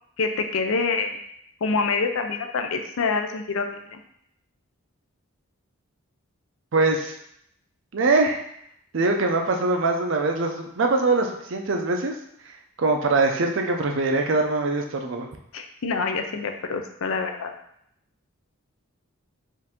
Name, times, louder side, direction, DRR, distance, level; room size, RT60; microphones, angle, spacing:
voice 1, 0.2-1.2 1.6-4.0 15.5-17.5, left 4 dB, 70° left, 5 dB, 0.5 m, -26 dB
voice 2, 6.7-7.1 7.9-8.4 8.9-12.1 12.8-15.3, right 3 dB, 60° right, 3 dB, 0.5 m, -22 dB
4.5 x 2.6 x 3.6 m, 0.72 s
head